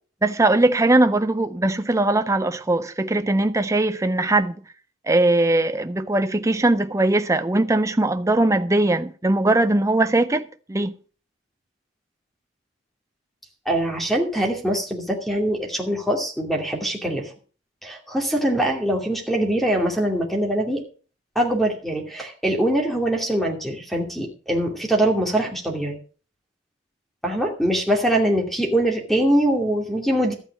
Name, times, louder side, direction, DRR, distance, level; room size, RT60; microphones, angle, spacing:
voice 1, 0.2-4.5 5.1-10.4 10.7-10.9, right 2 dB, 15° right, 0.5 m, -20 dB
voice 2, 13.7-17.3 17.8-20.8 21.3-26.0 27.2-30.3, right 1 dB, ahead, 2.5 m, -23 dB
13.0 x 9.0 x 5.2 m
head